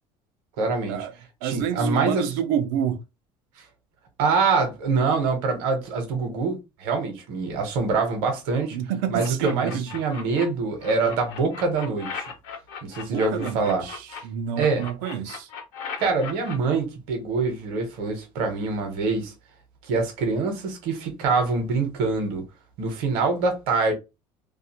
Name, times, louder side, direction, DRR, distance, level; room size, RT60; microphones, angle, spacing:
voice 1, 0.6-1.1 1.4-2.3 4.2-8.8 9.1-12.3 12.8-13.9 14.6-14.9 16.0-19.3 19.9-22.4 22.8-23.9, right 4 dB, 60° right, 0.9 m, -25 dB
voice 2, 1.4-3.0 8.7-9.9 13.0-15.5, right 9 dB, 85° right, 0.5 m, -28 dB
sound 1, 9.2-10.4 10.8-14.2 14.5-16.5, left 6 dB, 65° left, 0.8 m, -37 dB
2.4 x 2.3 x 2.8 m
cardioid pair, 180°, 11 cm